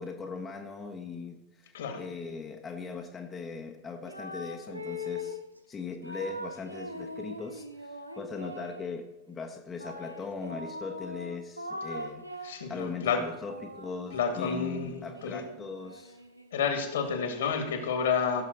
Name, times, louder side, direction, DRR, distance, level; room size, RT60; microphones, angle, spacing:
voice 1, 0.0-1.7 2.0-5.4 5.7-16.2, left 4 dB, 20° left, 2 dB, 1.2 m, -39 dB
sound 1, 4.0-5.5 6.0-8.9 9.8-12.7 13.2-16.8, left 1 dB, 85° right, 0.8 m, -42 dB
voice 2, 12.4-13.2 14.1-15.4 16.5-18.4, left 6 dB, 60° left, 6 dB, 2.1 m, -30 dB
16.5 x 7.1 x 3.9 m, 1.0 s
figure-of-eight pair, 90°, 0 cm